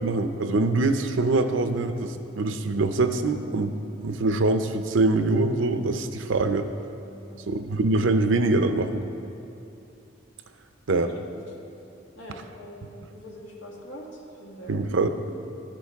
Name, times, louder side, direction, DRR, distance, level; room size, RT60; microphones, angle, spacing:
voice 1, 0.0-6.7 7.5-9.0 10.9-11.1 14.7-15.1, right 2 dB, 85° right, 8 dB, 0.6 m, -24 dB
voice 2, 7.1-7.5 11.0-11.4 12.2-14.0 14.4-14.8, equal, 80° left, -2 dB, 1.8 m, -43 dB
12.5 x 10.0 x 3.5 m, 2.7 s
head